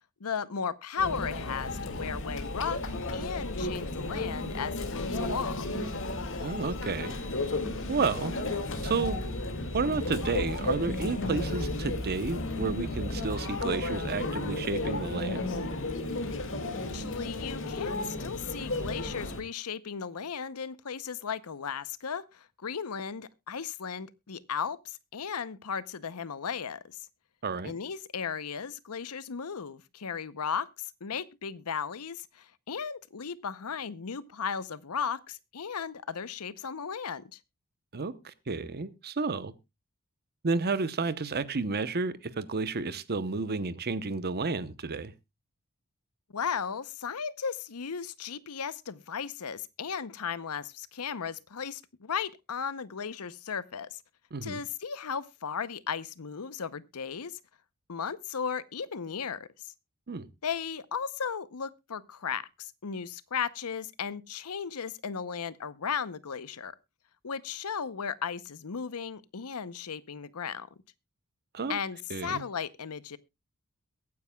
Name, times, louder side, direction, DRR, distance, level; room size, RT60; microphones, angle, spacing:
voice 1, 0.2-5.7 16.9-27.1 27.6-30.7 31.0-37.4 46.3-54.0 54.4-57.4 57.9-59.7 60.4-66.8 67.2-70.7 71.7-73.2, left 6 dB, 85° left, 0.7 m, -36 dB
Conversation / Chatter / Crowd, 1.0-19.4, left 2 dB, 60° left, 2.0 m, -33 dB
voice 2, 6.4-7.2 7.9-8.3 8.8-9.2 9.7-15.4 27.4-27.7 37.9-39.5 40.4-45.1 54.3-54.6 60.1-60.3 71.5-71.8 72.1-72.4, right 4 dB, 45° right, 0.9 m, -31 dB
22.5 x 9.5 x 2.3 m
head